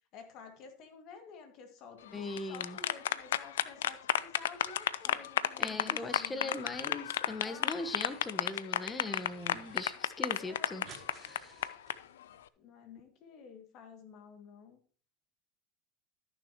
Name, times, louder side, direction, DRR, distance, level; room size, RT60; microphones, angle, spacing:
voice 1, 0.1-6.6 7.4-7.9 10.4-10.9 12.6-14.8, left 6 dB, 55° left, 5 dB, 2.2 m, -51 dB
voice 2, 2.1-2.8 5.6-10.8 11.2-11.6, left 2 dB, 20° left, 10 dB, 1.3 m, -40 dB
sound 1, 2.2-11.9, left 11 dB, 80° left, 0.4 m, -32 dB
sound 2, 6.1-6.8 7.1-8.3 8.7-9.9 10.2-10.3 10.5-12.4, right 6 dB, 40° right, 2.6 m, -57 dB
14.0 x 6.5 x 3.0 m, 0.43 s
hypercardioid pair, 90°, 0 cm